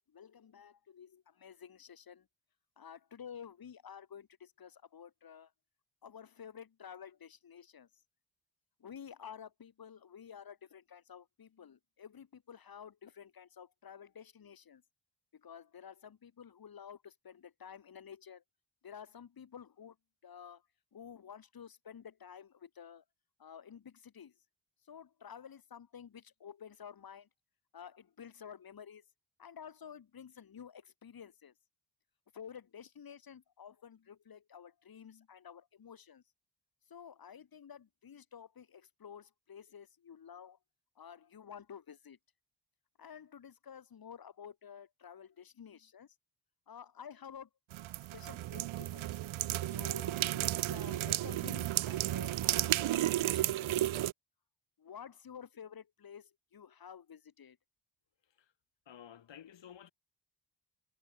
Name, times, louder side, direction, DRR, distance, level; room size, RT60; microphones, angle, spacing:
voice 1, 0.1-2.3 2.8-5.5 6.0-7.9 8.8-14.8 15.3-18.4 18.8-20.0 20.2-20.6 20.9-23.0 23.4-24.3 24.8-27.3 27.7-29.0 29.4-31.5 32.3-36.2 36.9-40.6 40.9-42.2 43.0-46.1 46.7-47.5 48.0-49.2 49.7-54.1 54.8-57.6, left 8 dB, 50° left, 5.1 m, -51 dB
sound 1, 47.7-54.1, right 14 dB, 90° right, 0.8 m, -33 dB
voice 2, 58.9-59.9, left 9 dB, 70° left, 4.9 m, -52 dB
wide cardioid pair, 180°, 46 cm